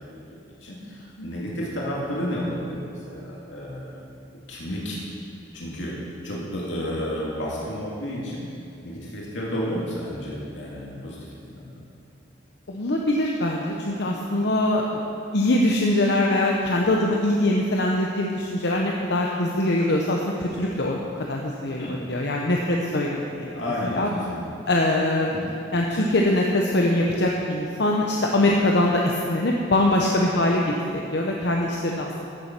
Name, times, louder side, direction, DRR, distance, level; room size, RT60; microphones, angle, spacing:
voice 1, 0.3-4.0 4.5-5.0 5.5-5.9 6.2-8.5 8.8-11.7 21.8-22.0 23.5-24.5 25.3-25.5, equal, 85° left, -4 dB, 2.4 m, -31 dB
voice 2, 12.7-15.0 15.3-23.6 23.9-24.1 24.7-25.3 25.7-30.6 30.9-32.1, left 1 dB, 65° left, -1 dB, 0.9 m, -23 dB
14.5 x 7.2 x 6.1 m, 2.6 s
head